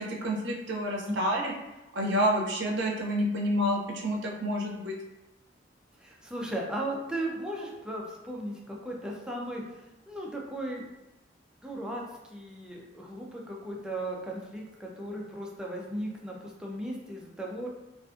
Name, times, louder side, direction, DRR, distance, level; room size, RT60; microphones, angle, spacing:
voice 1, 0.0-1.5 1.9-5.0, equal, 80° right, -1 dB, 0.5 m, -29 dB
voice 2, 1.0-1.3 6.0-10.8 11.6-17.7, right 1 dB, 5° right, -2 dB, 0.4 m, -36 dB
2.4 x 2.4 x 2.4 m, 0.98 s
head